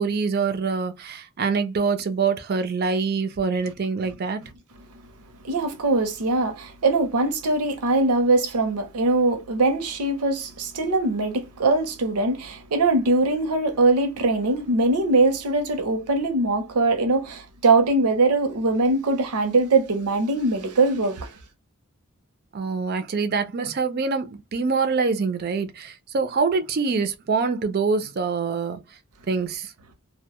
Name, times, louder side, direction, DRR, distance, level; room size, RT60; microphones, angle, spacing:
voice 1, 0.0-4.5 22.5-28.8 29.3-29.7, right 4 dB, 45° right, 0.4 m, -25 dB
voice 2, 5.4-21.3, right 2 dB, 90° right, 0.6 m, -22 dB
2.1 x 2.1 x 2.9 m
head